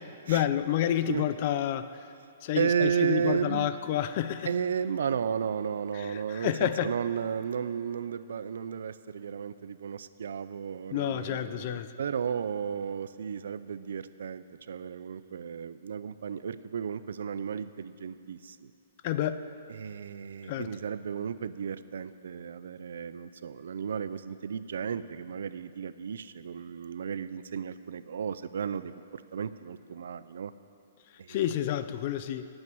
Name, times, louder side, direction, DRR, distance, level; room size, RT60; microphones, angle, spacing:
voice 1, 0.3-1.9 2.4-4.5 5.9-6.9 10.9-11.9 19.0-19.4 20.5-20.7 31.3-32.5, left 11 dB, 35° left, 12 dB, 0.5 m, -29 dB
voice 2, 2.6-3.8 4.4-18.7 19.7-30.5 31.2-31.4, right 7 dB, 70° right, 14 dB, 0.5 m, -33 dB
10.5 x 8.8 x 9.5 m, 2.5 s
hypercardioid pair, 170°, 0 cm